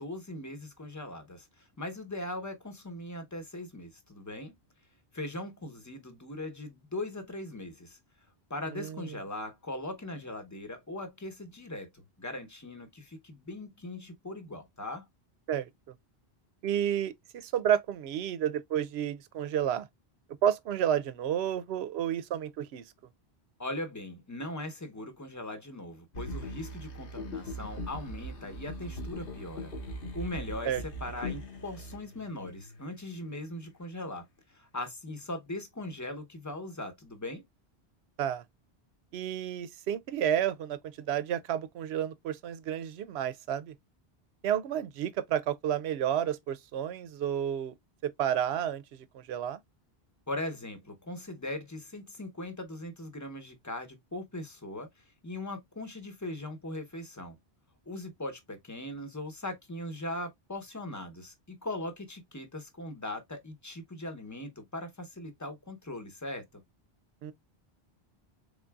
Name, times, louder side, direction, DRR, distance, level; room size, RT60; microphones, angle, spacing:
voice 1, 0.0-4.5 5.1-8.0 8.5-15.1 23.6-29.7 30.1-37.4 50.3-57.4 57.9-66.4, left 1 dB, 20° left, 0.8 m, -40 dB
voice 2, 8.7-9.1 15.5-15.7 16.6-19.9 20.4-22.8 30.7-30.8 38.2-38.4 39.1-43.7 44.4-47.8 48.0-48.8 49.1-49.6 67.2-67.3, right 10 dB, 85° right, 0.8 m, -31 dB
sound 1, 26.1-33.1 33.6-33.7, equal, 60° left, 1.0 m, -40 dB
3.8 x 3.6 x 2.2 m
omnidirectional pair, 1.1 m